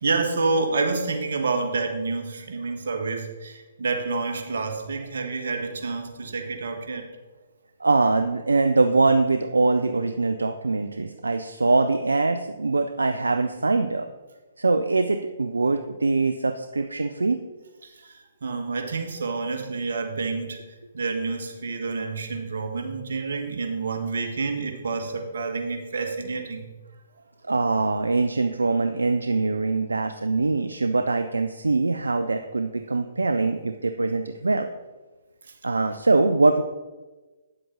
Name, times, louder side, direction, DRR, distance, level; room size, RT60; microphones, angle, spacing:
voice 1, 0.0-7.1 18.4-20.6 20.9-26.7, right 3 dB, 65° right, 3 dB, 1.5 m, -28 dB
voice 2, 7.8-14.1 14.6-17.4 27.4-34.7 35.6-36.6, right 3 dB, 85° right, 7 dB, 0.5 m, -23 dB
9.3 x 7.7 x 4.0 m, 1.2 s
figure-of-eight pair, 130°, 0 cm